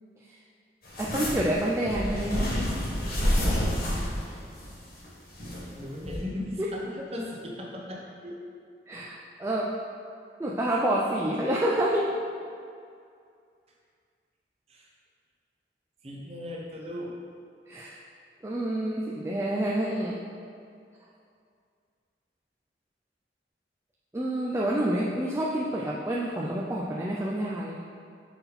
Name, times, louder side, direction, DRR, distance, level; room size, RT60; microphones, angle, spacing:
sound 1, 0.9-5.7 6.1-6.2, equal, 55° left, 1.4 m, -29 dB
voice 1, 1.0-2.6 8.9-9.7 10.4-12.1 17.7-18.0 18.4-20.2 24.1-27.8, right 1 dB, 15° right, -4 dB, 0.3 m, -28 dB
voice 2, 5.8-8.4 14.7-14.9 16.0-17.1, left 1 dB, 35° right, -2 dB, 0.8 m, -37 dB
5.8 x 4.1 x 4.1 m, 2.4 s
head